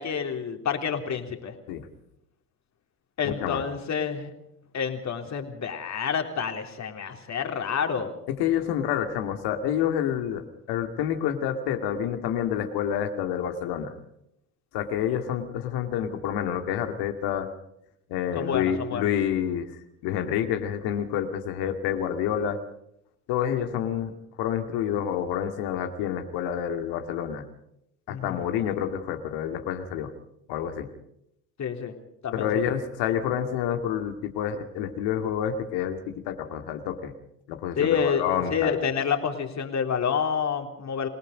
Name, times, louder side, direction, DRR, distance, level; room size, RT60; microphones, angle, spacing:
voice 1, 0.0-1.5 3.2-4.3 4.7-8.1 18.3-19.1 28.1-28.4 31.6-31.9 32.2-32.6 37.8-41.1, left 6 dB, 40° left, 5 dB, 3.7 m, -28 dB
voice 2, 3.2-3.6 8.3-13.9 14.7-17.5 18.1-19.7 20.0-22.6 23.3-24.1 24.4-27.4 28.1-30.1 30.5-30.9 32.3-37.1 37.5-38.8, left 9 dB, 65° left, 6 dB, 2.4 m, -28 dB
27.5 x 18.5 x 5.1 m, 0.79 s
hypercardioid pair, 70°, 42 cm